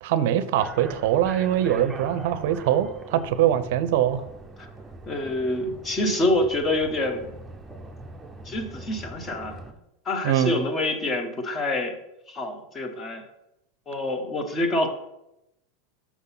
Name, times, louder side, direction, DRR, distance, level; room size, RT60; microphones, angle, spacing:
voice 1, 0.0-4.2 10.2-10.6, right 11 dB, 70° right, 13 dB, 0.5 m, -23 dB
sound 1, 0.6-9.7, right 2 dB, 10° right, 0.7 m, -42 dB
voice 2, 5.1-7.3 8.4-9.6 10.0-11.9 12.3-13.2 13.9-14.9, left 1 dB, 25° left, 6 dB, 1.1 m, -26 dB
6.0 x 3.8 x 5.6 m, 0.86 s
supercardioid pair, 125°, 0 cm